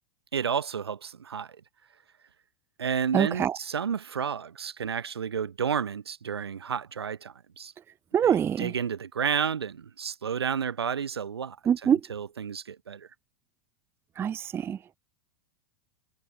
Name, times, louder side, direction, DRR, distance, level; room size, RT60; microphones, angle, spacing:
voice 1, 0.3-1.6 2.8-7.7 8.2-11.6 11.8-13.1, right 7 dB, 85° right, 1.2 m, -31 dB
voice 2, 3.1-3.6 8.1-8.7 11.7-12.0 14.2-14.8, right 8 dB, 20° right, 0.4 m, -24 dB
hypercardioid pair, 100°, 13 cm